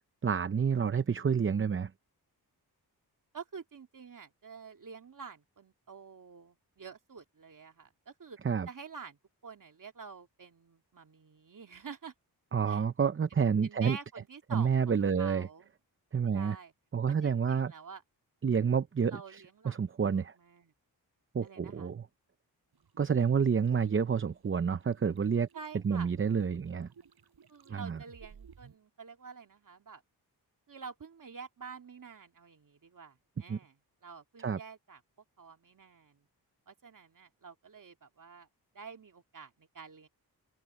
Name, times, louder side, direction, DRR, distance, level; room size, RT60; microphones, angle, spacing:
voice 1, 0.2-1.9 8.4-8.7 12.5-14.0 14.5-15.5 16.1-16.6 16.9-17.7 18.4-20.3 21.3-22.1 23.0-25.5 25.8-26.9 27.7-28.0 33.5-33.6 34.4-34.6, right 6 dB, 30° right, 0.6 m, -29 dB
voice 2, 3.3-8.4 8.7-12.1 12.7-12.8 13.3-15.7 16.3-16.7 17.2-18.0 19.1-19.8 20.1-20.7 21.4-21.9 25.5-26.1 27.5-30.0 30.7-33.8 34.0-35.0 35.4-36.3 36.7-38.5 38.7-40.1, right 5 dB, 55° right, 2.7 m, -48 dB
sound 1, 22.7-28.8, right 6 dB, 70° right, 7.6 m, -59 dB
open air
wide cardioid pair, 110°, 39 cm